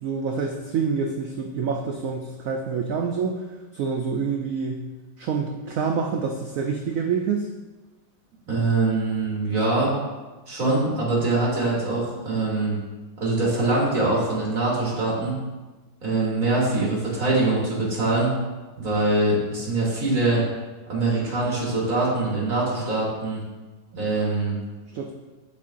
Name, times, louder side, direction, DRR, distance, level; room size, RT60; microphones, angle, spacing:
voice 1, 0.0-3.4 3.7-4.9 5.2-7.5 24.9-25.1, right 5 dB, 80° right, 2 dB, 0.7 m, -27 dB
voice 2, 8.5-9.9 10.5-12.7 13.2-15.4 16.0-18.3 18.8-20.4 20.9-23.4 23.9-24.5, right 2 dB, 45° right, -6 dB, 2.6 m, -23 dB
11.0 x 4.2 x 2.5 m, 1.2 s
omnidirectional pair, 2.0 m